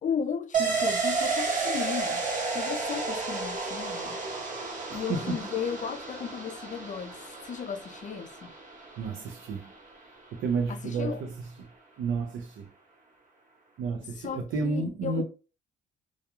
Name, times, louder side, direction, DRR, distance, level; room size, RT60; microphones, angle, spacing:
voice 1, 0.0-2.2 2.5-4.2 4.9-7.2 7.4-8.5 10.7-11.2 14.2-15.2, left 7 dB, 40° left, 0.5 m, -35 dB
sound 1, 0.5-9.9 10.3-10.4, right 4 dB, 40° right, 0.9 m, -32 dB
voice 2, 9.0-9.7 10.3-11.3 12.0-12.7 13.8-15.2, right 4 dB, 80° right, 0.6 m, -31 dB
2.3 x 2.2 x 2.9 m
cardioid pair, 90°, 20 cm